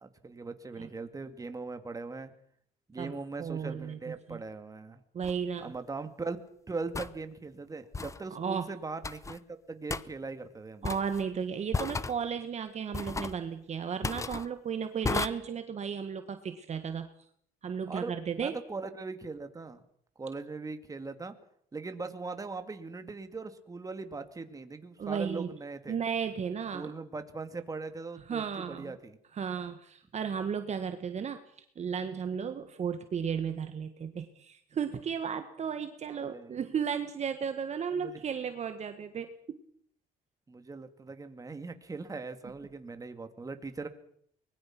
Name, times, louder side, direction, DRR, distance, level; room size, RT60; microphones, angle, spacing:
voice 1, 0.0-2.3 2.9-5.0 5.6-6.4 6.7-9.4 9.7-10.9 15.0-15.1 17.9-19.8 20.2-21.3 21.7-26.0 26.7-29.2 36.1-36.6 38.0-38.2 40.5-43.9, right 3 dB, 20° right, 8 dB, 2.3 m, -40 dB
voice 2, 3.0-4.4 5.1-5.7 8.3-8.7 10.8-17.1 17.6-18.5 25.0-25.5 25.9-26.9 28.3-28.9 29.3-31.4 31.7-39.6, right 7 dB, 40° right, 8 dB, 1.6 m, -34 dB
sound 1, 5.2-5.4 6.9-7.1 7.9-8.2 9.0-9.4 9.9-10.0 10.8-11.2 11.7-12.2 12.9-13.4 14.0-14.5 15.0-15.3, left 4 dB, 20° left, 0.8 m, -33 dB
24.0 x 21.0 x 6.1 m, 0.66 s
cardioid pair, 110°, 17 cm